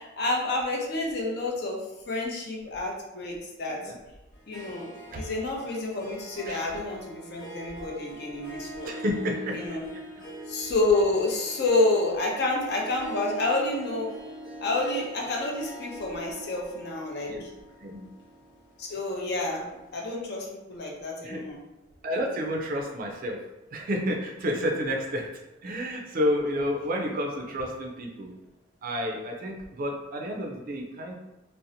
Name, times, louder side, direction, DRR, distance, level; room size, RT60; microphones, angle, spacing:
voice 1, 0.0-3.9 4.5-4.9 5.1-8.9 9.5-9.9 10.5-14.1 14.6-17.5 18.8-19.7 19.9-21.6, left 2 dB, 55° left, -1 dB, 0.5 m, -29 dB
Harp, 4.3-19.7, right 1 dB, 80° left, 0.8 m, -43 dB
voice 2, 8.8-9.6 17.3-17.5 17.8-18.1 21.2-21.4 22.0-23.4 23.7-25.3 25.6-28.3 28.8-31.1, equal, 45° right, 1 dB, 0.4 m, -30 dB
2.6 x 2.0 x 2.6 m, 0.98 s
head